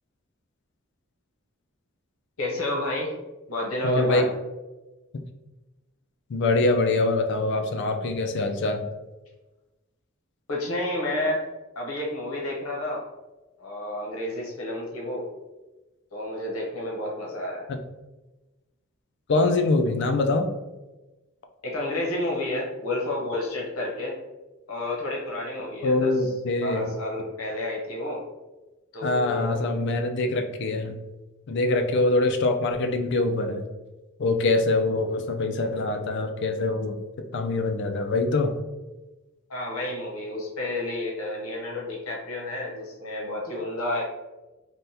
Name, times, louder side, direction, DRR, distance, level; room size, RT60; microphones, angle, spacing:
voice 1, 2.4-3.1 3.5-4.3 10.5-11.4 11.8-13.0 13.6-15.3 16.1-17.7 21.6-24.2 24.7-26.1 26.6-28.2 28.9-29.6 39.5-44.1, left 1 dB, 75° left, -2 dB, 0.8 m, -30 dB
voice 2, 3.8-4.3 5.1-5.2 6.3-8.8 17.7-17.8 19.3-20.5 25.8-26.9 29.0-31.0 31.5-33.6 34.2-37.0 37.3-38.6, left 2 dB, 55° left, 5 dB, 0.4 m, -24 dB
3.4 x 2.2 x 2.7 m, 1.1 s
head